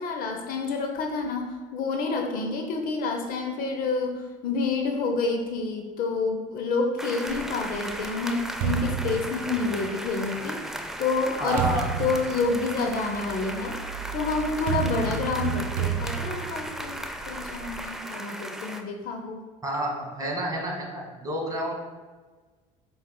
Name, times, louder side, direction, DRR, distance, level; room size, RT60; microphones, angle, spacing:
voice 1, 0.0-10.7 11.0-13.8 14.1-19.4, left 4 dB, 60° left, 3 dB, 0.7 m, -28 dB
sound 1, 7.0-18.8, right 1 dB, 5° right, 0.4 m, -36 dB
sound 2, 7.3-10.1 10.8-17.9, right 8 dB, 75° right, 0.6 m, -32 dB
voice 2, 11.4-11.9 19.6-21.7, right 1 dB, 20° right, -1 dB, 1.4 m, -29 dB
5.6 x 3.4 x 2.2 m, 1.4 s
supercardioid pair, 75°, 17 cm